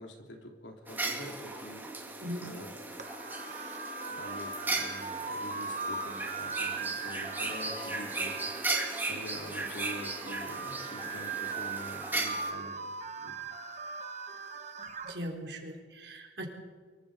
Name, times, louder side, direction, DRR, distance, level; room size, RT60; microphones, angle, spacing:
voice 1, 0.0-1.8 2.4-2.7 4.1-8.4 9.1-12.9 13.2-13.4, equal, 85° left, 3 dB, 3.5 m, -45 dB
sound 1, 0.9-12.5, right 2 dB, 10° right, 2.8 m, -37 dB
sound 2, 3.0-15.1, right 4 dB, 40° right, 1.6 m, -39 dB
voice 2, 15.0-16.5, equal, 65° right, 2 dB, 4.0 m, -39 dB
24.0 x 23.0 x 5.1 m, 1.6 s
head